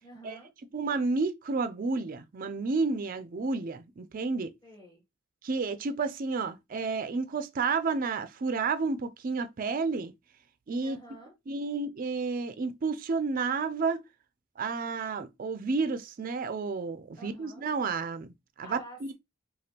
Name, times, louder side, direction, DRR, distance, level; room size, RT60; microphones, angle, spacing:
voice 1, 0.0-0.5 4.6-5.0 10.8-11.3 17.2-17.7 18.6-19.1, equal, 15° left, 1.1 m, -49 dB
voice 2, 0.7-4.5 5.4-10.1 10.7-11.0 11.5-14.0 14.6-19.1, right 4 dB, 40° right, 0.4 m, -31 dB
5.0 x 2.2 x 2.8 m
head